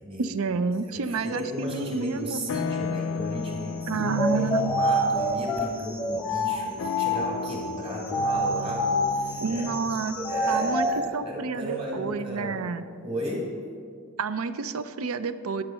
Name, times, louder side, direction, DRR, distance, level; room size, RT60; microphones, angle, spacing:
voice 1, 0.2-2.4 3.9-4.7 9.4-10.2 10.5-10.9 11.1-12.8 14.2-15.6, right 4 dB, 75° right, 13 dB, 0.5 m, -29 dB
voice 2, 0.9-12.6 13.0-13.5, equal, 25° right, -1 dB, 1.7 m, -35 dB
sound 1, 1.1-1.7 2.0-12.0, left 5 dB, 60° left, 0.3 m, -36 dB
sound 2, 4.1-7.5 8.0-11.0, equal, 5° left, 0.7 m, -27 dB
9.7 x 7.4 x 5.5 m, 2.2 s
head